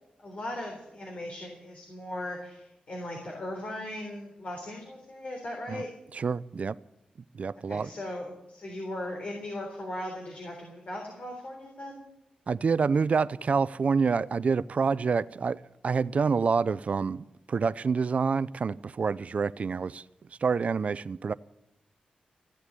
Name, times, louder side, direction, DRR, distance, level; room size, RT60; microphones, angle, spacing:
voice 1, 0.2-5.9 7.7-12.0, left 1 dB, 55° left, 3.6 m, -38 dB
voice 2, 6.1-6.8 7.3-7.9 12.5-20.0 20.4-21.3, right 5 dB, 55° right, 0.4 m, -27 dB
15.5 x 8.0 x 9.9 m
cardioid pair, 70°, 3 cm